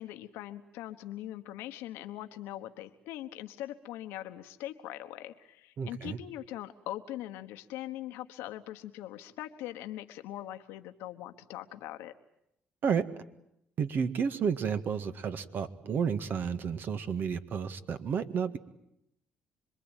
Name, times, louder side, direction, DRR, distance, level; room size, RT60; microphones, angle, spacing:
voice 1, 0.0-12.1, left 13 dB, 85° left, 8 dB, 1.2 m, -41 dB
voice 2, 5.8-6.2 12.8-13.0 13.8-18.6, right 6 dB, 60° right, 9 dB, 1.8 m, -31 dB
26.5 x 22.0 x 9.2 m, 0.79 s
supercardioid pair, 75°, 4 cm